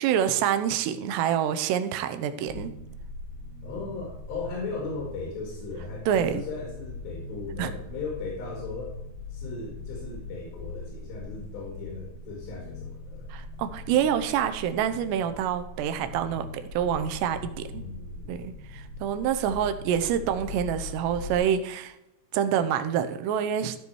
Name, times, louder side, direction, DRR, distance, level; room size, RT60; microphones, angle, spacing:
voice 1, 0.0-2.7 6.1-6.4 7.6-7.7 13.3-16.5 16.7-17.8 18.3-21.9 22.3-23.8, right 9 dB, 85° right, 9 dB, 2.9 m, -27 dB
sound 1, 2.5-21.4, left 3 dB, 15° left, 3.4 m, -41 dB
voice 2, 3.6-9.0 9.3-13.3 17.7-18.3, left 3 dB, 85° left, -1 dB, 4.1 m, -37 dB
14.0 x 5.4 x 4.7 m, 0.89 s
omnidirectional pair, 4.9 m